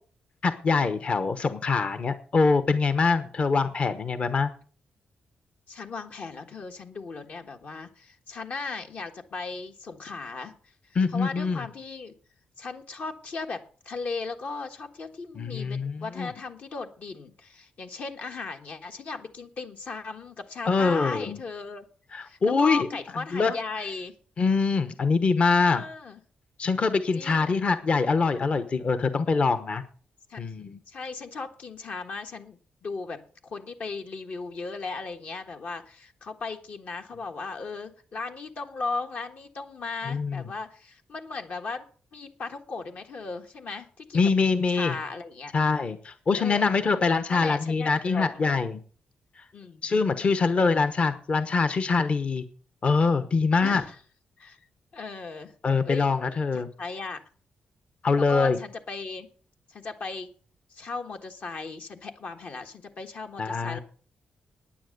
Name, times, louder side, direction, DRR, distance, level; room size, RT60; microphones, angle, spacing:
voice 1, 0.4-4.5 10.9-11.6 15.4-16.3 20.7-21.4 22.1-22.9 23.3-23.6 24.4-25.8 26.6-29.8 30.4-30.8 40.1-40.4 44.1-45.0 45.5-48.8 49.8-52.4 52.8-53.8 55.6-56.7 58.0-58.6 63.4-63.8, left 4 dB, 40° left, 12 dB, 1.0 m, -24 dB
voice 2, 5.7-10.5 11.1-12.1 12.6-21.9 22.2-24.1 25.6-26.2 27.1-27.6 30.3-30.4 30.9-41.8 42.1-44.3 44.7-45.5 46.4-46.9 47.3-48.4 49.5-49.9 50.2-50.5 53.6-54.0 54.4-54.6 54.9-55.5 55.8-56.1 56.5-57.2 58.3-59.3 59.7-60.3 60.7-63.8, left 4 dB, 60° left, 4 dB, 1.4 m, -37 dB
10.0 x 9.3 x 6.6 m, 0.42 s
cardioid pair, 120°, 3 cm